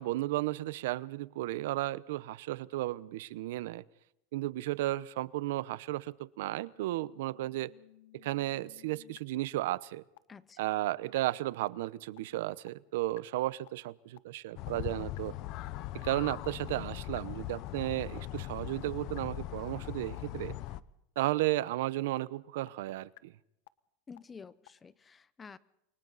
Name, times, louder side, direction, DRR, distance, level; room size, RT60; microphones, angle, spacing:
voice 1, 0.0-3.8 4.3-7.7 8.1-10.0 10.6-15.4 15.9-20.6 21.2-23.3, right 16 dB, 75° right, 18 dB, 0.9 m, -34 dB
sound 1, 6.7-9.2 9.7-9.8 10.2-10.3 10.7-10.8 11.2-11.3 11.7-11.8 12.2-12.3 12.7-12.8 13.2-13.3 13.7-13.8 14.2-14.3 14.7-14.8 15.2-15.3 15.7-15.8 16.2-16.3 16.7-16.8 17.2-17.3 17.7-17.8 18.2-18.3 18.7-18.8 19.2-19.3 19.7-19.8 20.2-20.3 20.7-20.8 21.2-21.3 21.7-21.8 22.2-22.3 22.7-22.8 23.2-23.3 23.7-23.8 24.2-24.3 24.7-24.8, left 19 dB, 70° left, 1.1 m, -55 dB
voice 2, 10.3-10.6 24.1-25.6, left 5 dB, 15° left, 17 dB, 0.8 m, -50 dB
sound 2, 14.6-20.8, left 15 dB, 45° left, 0.9 m, -40 dB
29.5 x 24.5 x 4.2 m, 0.81 s
supercardioid pair, 155°, 0 cm